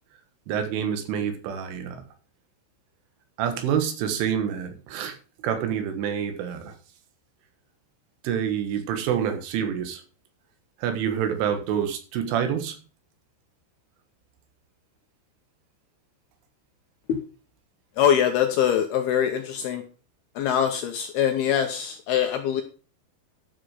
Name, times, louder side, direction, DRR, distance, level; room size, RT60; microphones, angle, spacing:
voice 1, 0.5-2.0 3.4-5.2 5.4-6.8 8.2-10.0 10.8-12.8, right 8 dB, 85° right, 7 dB, 4.0 m, -27 dB
voice 2, 18.0-19.8 20.4-22.6, left 9 dB, 75° left, 5 dB, 2.4 m, -23 dB
12.0 x 6.6 x 4.9 m, 0.38 s
omnidirectional pair, 5.5 m